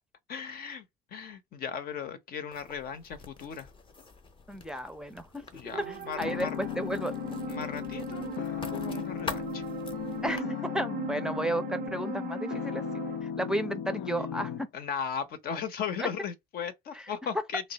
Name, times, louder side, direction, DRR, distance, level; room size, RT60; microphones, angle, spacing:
voice 1, 0.3-0.8 1.1-3.7 5.5-6.5 7.5-9.6 14.7-17.7, left 7 dB, 65° left, 0.8 m, -37 dB
Writing, 2.5-10.4, left 4 dB, 30° left, 0.8 m, -46 dB
voice 2, 4.5-5.4 5.9-7.1 10.2-10.4 10.7-12.8 13.2-14.7 16.0-16.1 16.9-17.1, right 1 dB, 5° right, 0.5 m, -33 dB
sound 1, 5.7-13.2, right 13 dB, 65° right, 0.4 m, -40 dB
sound 2, 6.2-14.6, left 10 dB, 90° left, 0.5 m, -36 dB
3.2 x 2.1 x 3.9 m
cardioid pair, 110°, 17 cm